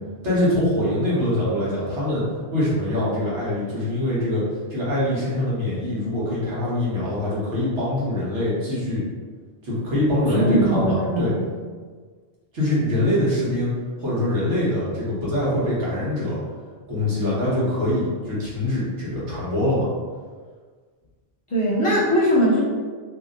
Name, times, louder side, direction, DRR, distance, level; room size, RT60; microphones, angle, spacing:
voice 1, 0.2-2.2 2.5-4.4 4.7-9.0 9.6-11.3 12.5-13.7 14.0-16.4 16.9-19.9, left 1 dB, 90° right, -8 dB, 1.5 m, -23 dB
voice 2, 10.4-11.4 21.5-22.6, equal, 30° left, -7 dB, 0.7 m, -20 dB
2.8 x 2.7 x 3.7 m, 1.6 s
omnidirectional pair, 1.2 m